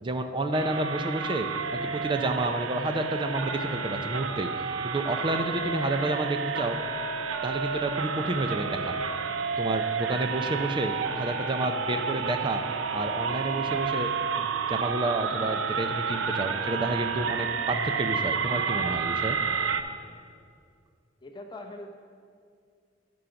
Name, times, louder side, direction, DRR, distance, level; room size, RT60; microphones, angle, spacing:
voice 1, 0.0-1.5 1.9-4.5 4.8-6.8 7.4-8.9 9.6-12.6 12.9-14.1 14.4-19.4, right 2 dB, 25° right, 7 dB, 0.4 m, -30 dB
sound 1, 0.5-19.8, right 5 dB, 85° right, 0.5 m, -30 dB
sound 2, 9.3-17.1, right 1 dB, 90° left, 0.8 m, -53 dB
voice 2, 21.2-21.9, left 1 dB, 25° left, 3 dB, 0.6 m, -41 dB
11.0 x 3.8 x 5.7 m, 2.2 s
head